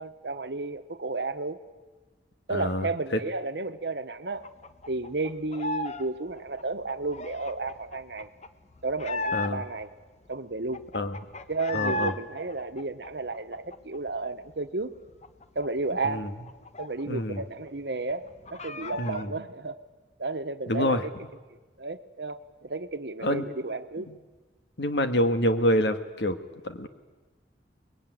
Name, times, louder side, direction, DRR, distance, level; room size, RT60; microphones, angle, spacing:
voice 1, 0.0-1.6 2.5-4.5 4.9-8.3 8.8-9.9 10.3-10.8 11.5-14.9 15.5-16.3 16.8-19.8 20.2-21.1 21.5-24.1, right 3 dB, 70° right, 10 dB, 1.2 m, -33 dB
voice 2, 2.5-2.9 9.3-9.6 10.9-11.2 11.7-12.1 16.0-16.3 17.1-17.4 19.0-19.3 20.7-21.0 23.2-23.4 24.0-24.1 24.8-26.4 26.6-26.9, equal, 75° left, 9 dB, 1.7 m, -26 dB
sound 1, 4.4-6.0 6.3-9.8 10.2-10.3 10.5-12.2 12.5-14.2 14.5-14.6 14.9-17.4 17.7-17.8 18.1-19.3, left 2 dB, 40° left, 1.1 m, -36 dB
24.0 x 21.5 x 9.4 m, 1.3 s
head